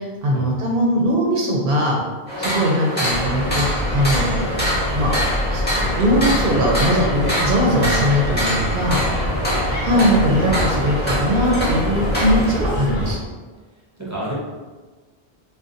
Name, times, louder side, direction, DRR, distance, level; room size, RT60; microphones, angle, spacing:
voice 1, 0.0-2.0 2.4-3.7 3.9-4.6 4.9-5.1 5.5-9.0 9.8-13.2, equal, 65° right, -2 dB, 0.7 m, -20 dB
sound 1, 2.3-12.6, equal, 10° left, 0.8 m, -25 dB
sound 2, 3.1-13.1, left 1 dB, 45° left, 0.6 m, -25 dB
voice 2, 9.0-10.0 14.0-14.3, right 2 dB, 20° right, -6 dB, 0.5 m, -32 dB
2.5 x 2.2 x 3.8 m, 1.4 s
omnidirectional pair, 1.1 m